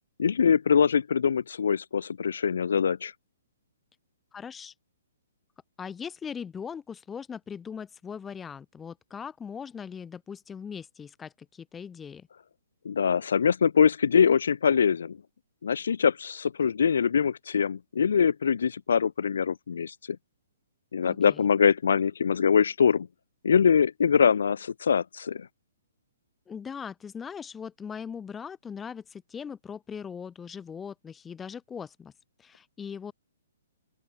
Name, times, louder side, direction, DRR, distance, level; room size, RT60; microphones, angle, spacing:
voice 1, 0.2-3.1 12.8-15.2 15.6-20.2 20.9-23.1 23.4-25.5, left 6 dB, 70° left, 0.9 m, -23 dB
voice 2, 4.3-4.7 5.8-12.3 21.0-21.5 26.5-32.1 32.4-33.1, left 7 dB, 5° left, 0.3 m, -40 dB
open air
hypercardioid pair, 175°, 0 cm